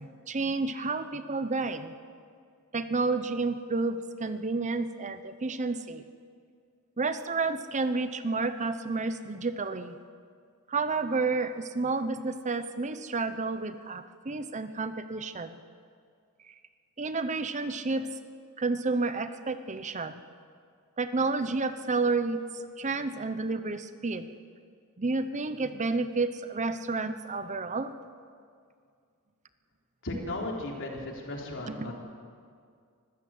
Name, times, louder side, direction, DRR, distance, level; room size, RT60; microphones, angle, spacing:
voice 1, 0.0-1.9 2.7-6.0 7.0-9.9 10.7-15.6 16.5-16.6 17.0-18.1 18.6-20.2 21.0-24.3 25.0-27.9 31.7-31.9, right 3 dB, 35° right, 11 dB, 0.7 m, -30 dB
voice 2, 30.0-31.9, left 1 dB, 60° left, -1 dB, 3.9 m, -35 dB
24.0 x 15.0 x 7.9 m, 2.2 s
head